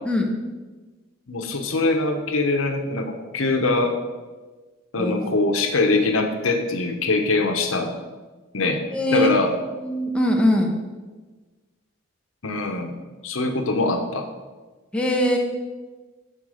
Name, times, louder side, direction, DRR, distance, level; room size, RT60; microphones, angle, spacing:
voice 1, 1.3-4.0 4.9-7.9 8.5-8.8 9.1-9.5 12.4-12.9 13.2-14.3, left 3 dB, 85° left, 5 dB, 1.1 m, -22 dB
voice 2, 5.0-5.3 8.9-9.3 9.8-10.7 14.9-15.4, left 1 dB, 5° left, -1 dB, 1.1 m, -21 dB
12.5 x 4.7 x 5.0 m, 1.3 s
head